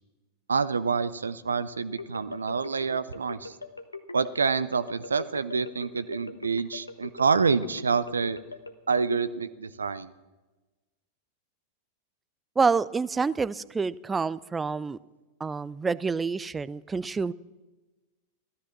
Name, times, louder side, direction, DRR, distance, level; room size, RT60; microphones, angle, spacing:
voice 1, 0.5-3.5 4.1-8.4 8.9-10.1, right 5 dB, 75° right, 15 dB, 0.6 m, -27 dB
Xylophone Clock, 2.0-8.7, left 3 dB, 80° left, 1.0 m, -40 dB
voice 2, 12.6-15.0 15.4-17.3, right 4 dB, 15° right, 20 dB, 0.4 m, -27 dB
15.5 x 13.5 x 6.0 m, 1.2 s
figure-of-eight pair, 90°, 0 cm